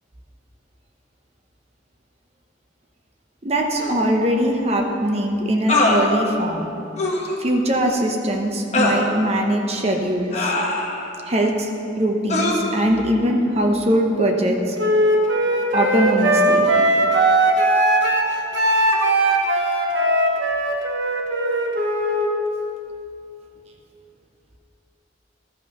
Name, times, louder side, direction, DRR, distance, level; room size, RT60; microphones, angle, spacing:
voice 1, 3.4-6.7 7.4-10.5 11.3-11.7 12.0-14.8 15.7-16.7, right 1 dB, 35° right, 2 dB, 0.9 m, -21 dB
sound 1, 3.8-3.9 5.7-6.0 7.0-7.3 8.7-9.0 10.3-11.1 12.3-12.5, left 2 dB, 35° left, 1.1 m, -21 dB
Wind instrument woodwind instrument, 14.8-22.3, right 1 dB, 75° right, 1.1 m, -19 dB
12.5 x 5.7 x 5.9 m, 2.8 s
head